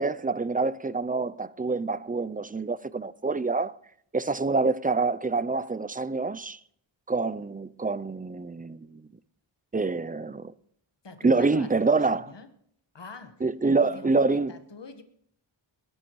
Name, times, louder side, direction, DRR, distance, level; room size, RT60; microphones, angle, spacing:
voice 1, 0.0-3.7 4.1-6.6 7.1-9.0 9.7-10.5 11.2-12.3 13.4-14.5, right 3 dB, 20° right, 0.5 m, -26 dB
voice 2, 11.0-12.5 12.9-15.0, left 4 dB, 60° left, 1.6 m, -45 dB
21.5 x 11.0 x 3.2 m
cardioid pair, 50°, 49 cm